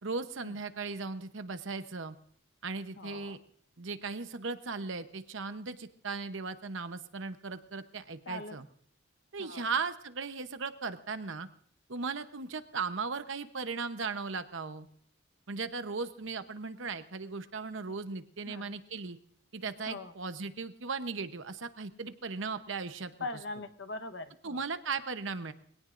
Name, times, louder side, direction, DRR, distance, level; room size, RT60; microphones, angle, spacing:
voice 1, 0.0-2.2 2.6-3.4 3.8-8.6 9.3-11.5 11.9-14.9 15.5-19.2 19.5-23.1 24.4-25.5, right 4 dB, 70° right, 10 dB, 0.9 m, -37 dB
voice 2, 3.0-3.4 8.2-8.6 9.4-9.6 18.5-18.7 19.8-20.1 23.2-24.6, left 2 dB, 55° left, 8 dB, 1.1 m, -41 dB
22.5 x 17.5 x 2.6 m, 0.64 s
head